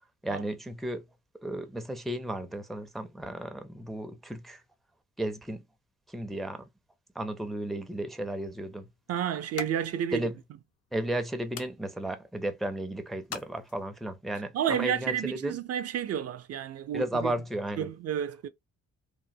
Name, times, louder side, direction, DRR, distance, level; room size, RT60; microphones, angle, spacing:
voice 1, 0.2-1.0 1.4-4.6 5.2-5.6 6.1-6.6 7.2-8.9 10.1-10.3 10.9-15.6 16.9-17.9, right 1 dB, ahead, 0.4 m, -34 dB
sound 1, 7.9-14.2, left 8 dB, 55° left, 0.6 m, -48 dB
voice 2, 9.1-10.2 14.5-17.3 17.8-18.5, right 9 dB, 55° right, 0.5 m, -31 dB
3.0 x 2.0 x 2.6 m
cardioid pair, 90°, 30 cm